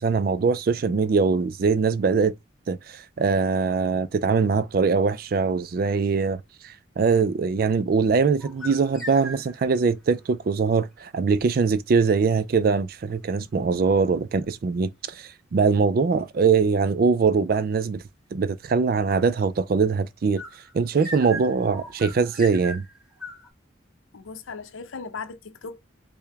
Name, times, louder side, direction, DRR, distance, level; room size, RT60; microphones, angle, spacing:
voice 1, 0.0-2.3 2.7-18.0 18.3-20.4 20.7-22.9, right 5 dB, 45° right, 0.3 m, -22 dB
sound 1, 8.4-9.8 20.4-23.5, equal, ahead, 1.2 m, -39 dB
voice 2, 24.1-25.8, left 4 dB, 90° left, 0.6 m, -37 dB
4.6 x 2.1 x 3.4 m
head